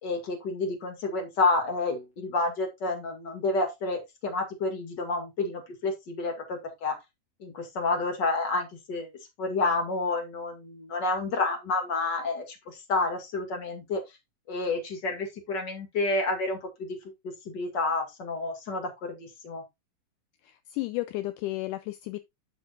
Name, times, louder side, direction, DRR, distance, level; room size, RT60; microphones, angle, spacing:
voice 1, 0.0-7.0 7.4-9.1 9.4-14.0 14.5-17.0 17.2-19.6, left 3 dB, 35° left, 2.3 m, -29 dB
voice 2, 20.4-22.2, left 18 dB, 80° left, 2.0 m, -33 dB
10.0 x 6.4 x 2.4 m
omnidirectional pair, 3.8 m